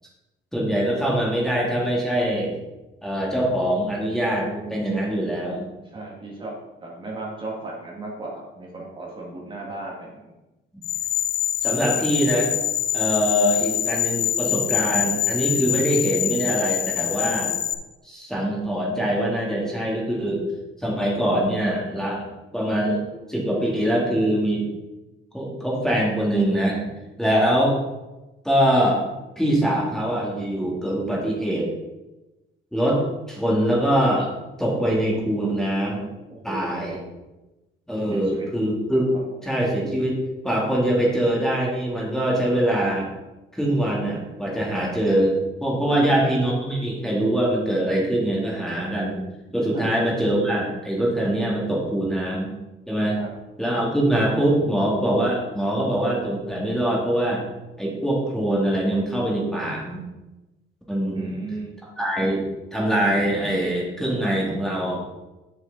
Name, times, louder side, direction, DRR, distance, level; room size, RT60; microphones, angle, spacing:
voice 1, 0.5-2.5 3.0-5.7 11.6-12.5 12.9-17.5 18.0-20.5 20.8-22.2 22.5-23.0 23.3-24.7 25.3-26.8 27.2-27.8 28.4-29.0 29.4-31.7 32.7-33.0 33.3-34.3 34.6-36.0 36.4-37.0 37.9-39.1 39.4-40.2 40.4-43.1 43.5-49.2 49.5-52.5 52.9-53.2 53.6-57.5 57.8-60.0 60.9-61.4 62.0-65.0, right 1 dB, ahead, -4 dB, 2.0 m, -23 dB
voice 2, 5.9-6.5 6.8-10.2 36.3-37.0 38.1-38.5 45.9-46.2 49.7-49.8 53.1-53.3 61.1-61.7, right 2 dB, 25° right, -3 dB, 1.8 m, -36 dB
sound 1, 10.8-17.7, left 11 dB, 85° left, 0.6 m, -25 dB
8.3 x 6.9 x 3.9 m, 1.1 s
cardioid pair, 140°, 20 cm